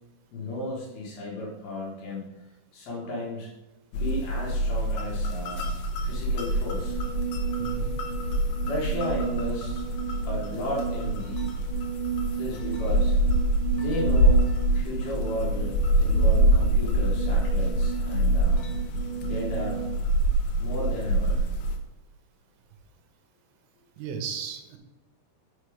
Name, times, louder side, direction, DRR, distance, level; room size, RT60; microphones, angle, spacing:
voice 1, 0.3-2.3 2.7-3.5 3.9-5.7 6.0-7.0 8.7-9.8 10.2-11.5 12.3-13.2 13.7-14.5 14.7-18.6 19.2-19.9 20.6-21.5, left 1 dB, 65° left, -3 dB, 2.8 m, -34 dB
sound 1, 3.9-21.8, right 1 dB, 80° left, 2.2 m, -25 dB
sound 2, 6.8-20.0, right 9 dB, 40° right, 2.6 m, -35 dB
voice 2, 7.6-7.9 24.0-24.8, right 7 dB, 85° right, 5 dB, 3.4 m, -35 dB
6.6 x 6.1 x 4.9 m, 0.98 s
omnidirectional pair, 5.8 m